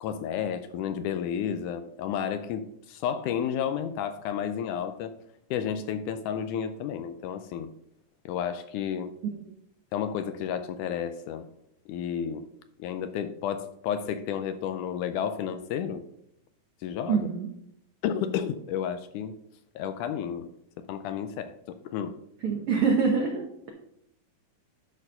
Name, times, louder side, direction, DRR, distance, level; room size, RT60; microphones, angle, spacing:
voice 1, 0.0-5.1 5.5-7.7 8.3-9.1 9.9-11.5 11.9-12.5 12.8-16.0 16.8-17.3 18.0-19.4 19.8-20.5 20.9-22.1, left 8 dB, 80° left, 9 dB, 1.9 m, -31 dB
voice 2, 17.1-17.5 22.4-23.7, right 5 dB, 75° right, 2 dB, 1.3 m, -25 dB
10.5 x 4.5 x 5.5 m, 0.76 s
omnidirectional pair, 3.9 m